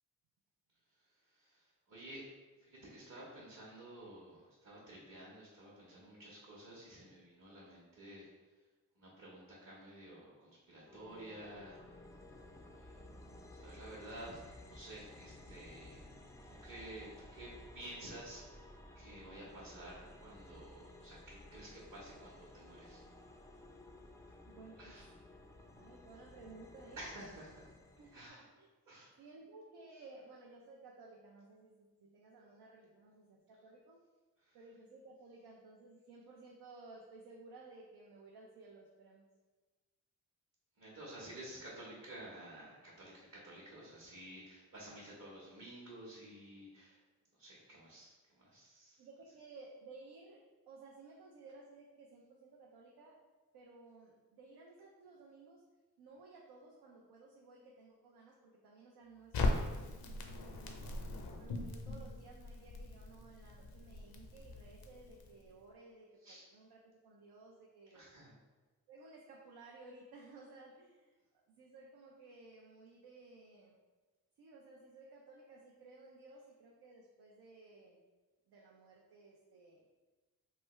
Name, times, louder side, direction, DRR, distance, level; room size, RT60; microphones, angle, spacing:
voice 1, 1.0-2.3 2.6-8.3 9.0-11.9 12.4-16.1 16.5-18.7 18.9-23.0 24.3-24.4 24.8-25.1 27.0-27.7 28.1-28.5 28.9-29.1 34.4-34.6 40.8-47.0 47.3-49.1 66.2-66.4 67.9-68.3, right 1 dB, 45° right, -6 dB, 1.0 m, -52 dB
sound 1, 10.9-28.3, left 1 dB, 10° left, 0.3 m, -56 dB
voice 2, 24.4-25.0 25.8-27.0 28.0-28.7 29.2-34.0 34.5-39.3 49.0-53.2 53.5-55.7 56.0-60.9 61.4-68.1 68.9-71.1 71.6-73.8 74.4-78.0 78.5-79.8, right 3 dB, 75° right, -2 dB, 0.5 m, -57 dB
Crackle, 59.3-65.5, left 2 dB, 65° left, 0.5 m, -40 dB
3.2 x 2.2 x 3.1 m, 1.3 s
supercardioid pair, 45°, 39 cm